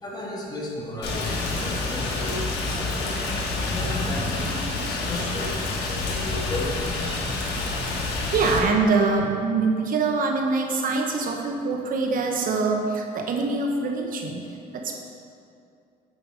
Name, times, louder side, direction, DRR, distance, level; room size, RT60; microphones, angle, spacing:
voice 1, 0.0-3.2 3.6-6.8, left 1 dB, 25° left, -3 dB, 1.7 m, -35 dB
Rain, 1.0-8.6, left 3 dB, 90° left, 1.3 m, -28 dB
voice 2, 8.3-14.5 14.7-14.9, right 4 dB, 55° right, 2 dB, 0.9 m, -24 dB
8.5 x 5.3 x 4.8 m, 2.5 s
cardioid pair, 110°, 17 cm